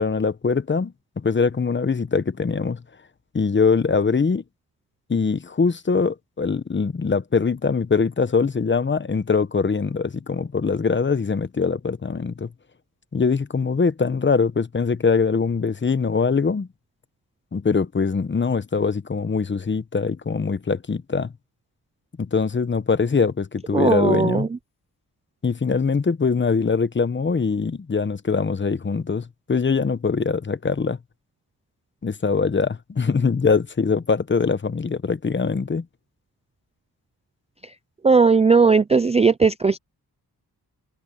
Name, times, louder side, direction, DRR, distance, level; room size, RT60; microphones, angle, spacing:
voice 1, 0.0-2.8 3.3-4.4 5.1-12.5 13.1-16.7 17.5-21.3 22.2-24.5 25.4-31.0 32.0-35.9, left 5 dB, 30° left, 1.0 m, -22 dB
voice 2, 23.7-24.5 38.0-39.8, right 4 dB, 20° right, 0.4 m, -17 dB
cardioid pair, 95°, 38 cm